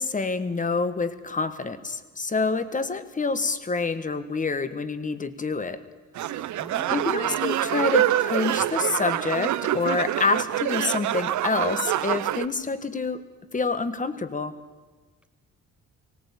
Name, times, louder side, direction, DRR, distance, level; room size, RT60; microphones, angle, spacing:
voice 1, 0.0-5.8 6.3-6.4 6.9-13.2 13.5-14.5, left 4 dB, 25° left, 13 dB, 1.5 m, -27 dB
sound 1, 6.2-12.5, right 13 dB, 70° right, 0.8 m, -26 dB
voice 2, 6.6-8.0, right 1 dB, 5° right, 8 dB, 1.6 m, -45 dB
19.0 x 17.5 x 8.6 m, 1.4 s
cardioid pair, 90°, 30 cm